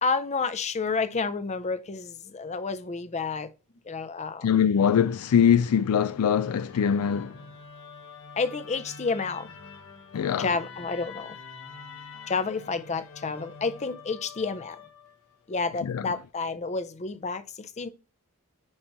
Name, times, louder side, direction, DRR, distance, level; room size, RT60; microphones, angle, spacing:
voice 1, 0.0-3.5 3.9-4.5 8.4-9.5 10.4-11.4 12.3-14.8 15.5-17.9, left 4 dB, 30° left, 0.5 m, -30 dB
voice 2, 4.4-7.4 10.1-10.5 15.8-16.1, left 8 dB, 85° left, 0.4 m, -23 dB
Musical instrument, 6.1-15.4, left 5 dB, 65° left, 1.4 m, -46 dB
9.6 x 5.0 x 3.0 m
head